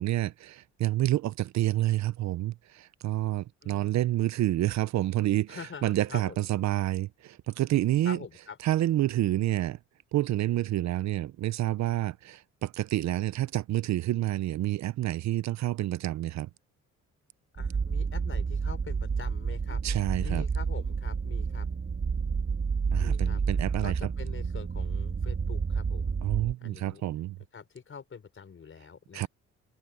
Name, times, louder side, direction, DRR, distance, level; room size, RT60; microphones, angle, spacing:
voice 1, 0.0-8.2 8.6-9.8 10.1-16.5 19.8-20.4 22.9-24.0 26.2-27.4 29.1-29.3, right 14 dB, 65° right, 0.6 m, -28 dB
voice 2, 3.6-4.0 5.5-6.4 8.0-8.6 17.5-19.8 20.2-21.7 22.9-23.4 23.8-26.2 26.6-27.0 27.5-29.3, left 6 dB, 45° left, 5.3 m, -45 dB
sound 1, 17.6-26.5, right 5 dB, 40° right, 2.9 m, -30 dB
cardioid pair, 90°, 30 cm